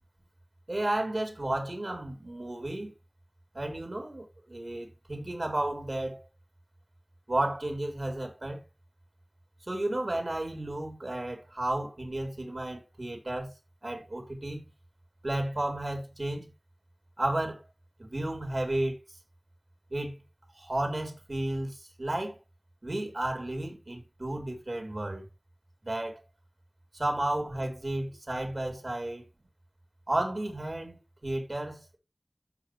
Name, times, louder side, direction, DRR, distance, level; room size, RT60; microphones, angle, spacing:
voice 1, 0.7-2.9 3.5-6.2 7.3-8.6 9.7-13.5 13.8-14.6 15.2-16.5 17.2-17.6 18.0-19.0 19.9-20.1 20.6-22.4 22.8-25.3 25.8-26.2 26.9-29.3 30.1-32.0, right 1 dB, 60° right, 3.8 m, -32 dB
14.5 x 5.5 x 3.3 m
wide cardioid pair, 50°, 0 cm